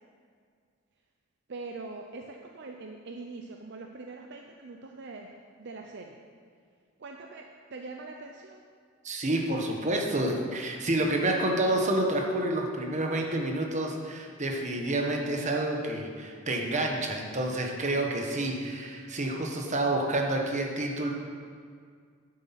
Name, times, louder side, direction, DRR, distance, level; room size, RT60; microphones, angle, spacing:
voice 1, 1.5-6.2 7.0-8.7, right 3 dB, 55° right, 2 dB, 0.6 m, -43 dB
voice 2, 9.0-21.1, right 1 dB, 35° right, 2 dB, 1.3 m, -29 dB
10.0 x 7.9 x 5.9 m, 2.1 s
head